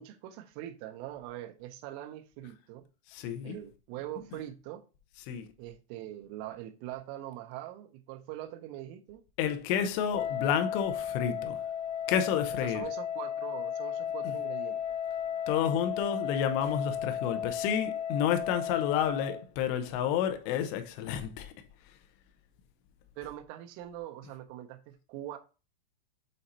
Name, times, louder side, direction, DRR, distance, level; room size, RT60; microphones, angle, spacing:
voice 1, 0.0-2.9 3.4-4.8 5.6-9.2 11.2-11.4 12.6-14.8 23.2-25.4, right 13 dB, 85° right, 3.2 m, -43 dB
voice 2, 3.1-3.6 5.3-5.5 9.4-11.6 12.1-12.8 14.3-14.4 15.5-21.5, left 9 dB, 85° left, 2.5 m, -30 dB
Wind instrument woodwind instrument, 10.1-19.5, left 9 dB, 70° left, 2.6 m, -34 dB
8.8 x 4.2 x 2.7 m
omnidirectional pair, 5.6 m